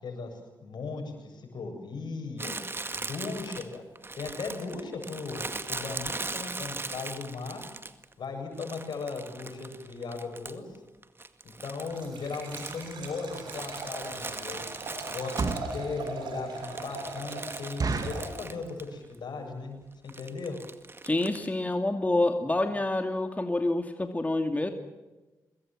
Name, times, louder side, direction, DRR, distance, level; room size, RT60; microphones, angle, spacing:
voice 1, 0.0-2.6 2.9-3.8 4.2-7.6 8.2-10.8 11.6-14.7 15.1-19.8 20.0-20.6, left 4 dB, 70° left, 4 dB, 7.7 m, -37 dB
Crumpling crinkling, 2.4-8.1 8.6-10.8 11.0-16.1 16.5-18.9 19.1-19.2 20.1-21.5, right 3 dB, 30° right, 2.0 m, -40 dB
Liquid, 11.8-18.7, right 3 dB, 85° right, 6.4 m, -41 dB
sound 1, 15.4-15.8 16.3-16.4 16.8-16.9 17.2-17.3 17.8-18.3 18.9-19.2 19.4-19.5 19.8-20.0 20.6-20.7 20.9-21.1 21.4-21.5 21.7-21.8, right 3 dB, 55° right, 2.9 m, -31 dB
voice 2, 21.0-24.7, left 2 dB, 20° left, 5 dB, 2.6 m, -27 dB
25.5 x 21.0 x 7.7 m, 1.1 s
supercardioid pair, 50°, 8 cm